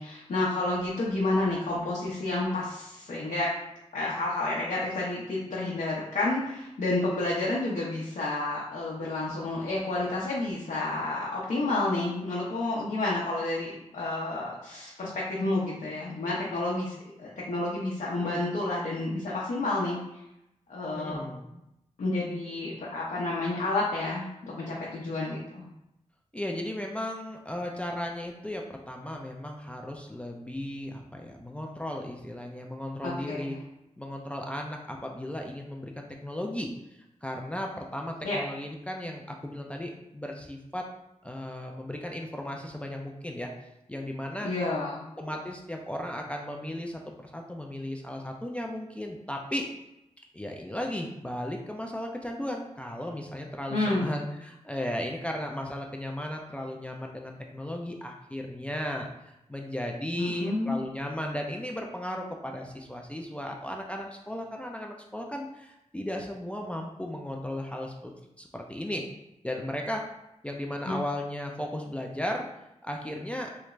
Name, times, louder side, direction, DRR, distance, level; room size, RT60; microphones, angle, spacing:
voice 1, 0.0-3.5 3.9-20.0 20.7-21.2 22.0-25.7 33.0-33.6 38.2-38.4 44.4-45.1 53.7-54.1 60.2-60.8 70.9-71.0, left 2 dB, 75° left, -6 dB, 0.6 m, -30 dB
voice 2, 20.9-21.6 26.3-33.6 34.0-36.7 37.2-40.9 41.2-43.5 43.9-44.5 45.2-47.0 47.3-49.7 50.3-59.1 59.5-68.1 68.4-69.0 69.4-70.0 70.4-72.4 72.8-73.5, left 1 dB, 10° left, 1 dB, 0.3 m, -35 dB
3.2 x 2.4 x 3.0 m, 0.87 s
wide cardioid pair, 125°, 13 cm